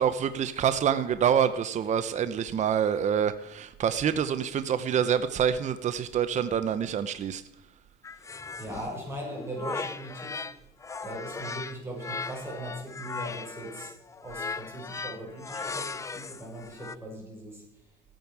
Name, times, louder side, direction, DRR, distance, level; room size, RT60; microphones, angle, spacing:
voice 1, 0.0-7.4, right 8 dB, 40° right, 11 dB, 0.8 m, -26 dB
sound 1, 8.0-10.6 10.8-17.0, left 4 dB, 15° left, 0.4 m, -38 dB
voice 2, 8.6-10.6 11.0-13.9 14.2-17.8, right 1 dB, 15° right, -2 dB, 6.1 m, -39 dB
15.0 x 9.1 x 6.1 m, 0.86 s
cardioid pair, 120°, 19 cm